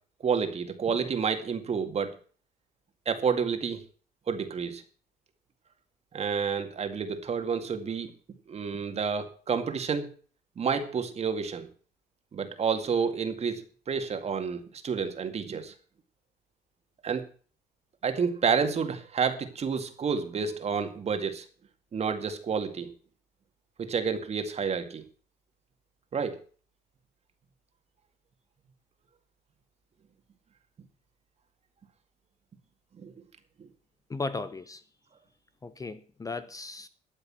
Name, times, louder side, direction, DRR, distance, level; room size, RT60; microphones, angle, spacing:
voice 1, 0.2-2.1 3.1-3.8 4.3-4.8 6.1-8.1 8.5-10.1 10.6-11.7 12.3-15.7 17.0-17.2 18.0-21.5 21.9-22.9 23.8-25.0 26.1-26.4 33.0-33.1 33.6-33.7, right 6 dB, 40° right, 2.2 m, -29 dB
voice 2, 34.1-34.8 35.6-36.9, left 3 dB, 20° left, 0.8 m, -36 dB
13.0 x 8.0 x 7.5 m
cardioid pair, 110°, 17 cm